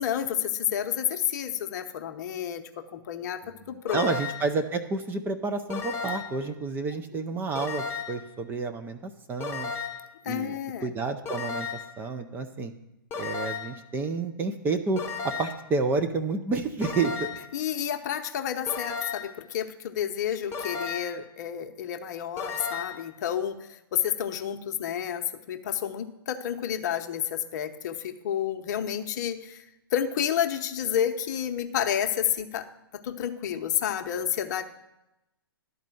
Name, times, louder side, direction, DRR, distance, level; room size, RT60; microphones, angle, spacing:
voice 1, 0.0-3.4 3.7-4.1 10.2-10.9 17.5-29.6 29.9-32.7 32.9-34.6, left 9 dB, 50° left, 8 dB, 0.8 m, -30 dB
sound 1, 3.9-4.6 5.7-6.4 7.6-8.3 9.4-10.1 11.3-12.0 13.1-13.8 15.0-15.7 16.8-17.6 18.7-19.4 20.5-21.3 22.4-23.1, left 5 dB, 20° left, 0.9 m, -34 dB
voice 2, 3.9-9.7 10.3-10.5 10.8-11.7 12.0-12.7 13.2-17.3, right 4 dB, 15° right, 6 dB, 0.6 m, -30 dB
12.0 x 4.2 x 7.6 m, 0.92 s
hypercardioid pair, 130°, 12 cm